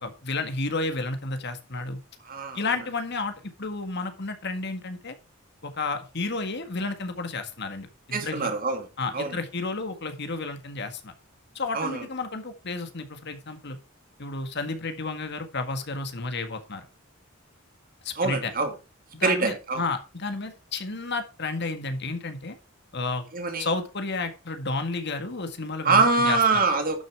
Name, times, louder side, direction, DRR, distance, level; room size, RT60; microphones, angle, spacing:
voice 1, 0.0-2.0 2.5-5.2 5.6-8.5 9.0-11.1 11.6-13.8 14.2-16.9 18.0-18.5 19.1-22.6 22.9-23.3 23.6-26.6, left 3 dB, 55° left, 1.7 m, -31 dB
voice 2, 2.2-2.6 8.1-8.9 9.1-9.4 11.7-12.0 18.2-18.7 19.2-19.8 23.3-23.7 25.8-27.0, right 4 dB, 45° right, 2.5 m, -24 dB
11.5 x 6.7 x 4.7 m
head